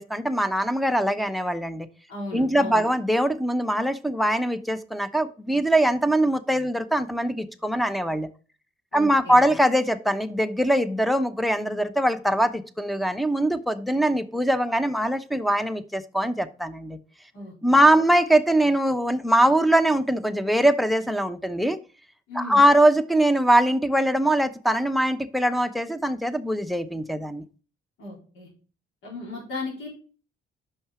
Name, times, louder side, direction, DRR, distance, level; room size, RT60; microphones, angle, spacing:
voice 1, 0.0-1.9 2.3-8.3 8.9-17.0 17.6-21.8 22.3-27.4, right 1 dB, ahead, 12 dB, 0.7 m, -22 dB
voice 2, 2.1-2.9 8.9-9.5 17.3-17.8 22.3-22.6 28.0-28.5 29.0-29.9, left 2 dB, 85° left, -3 dB, 4.1 m, -36 dB
6.0 x 5.9 x 4.9 m, 0.38 s
cardioid pair, 90°, 20 cm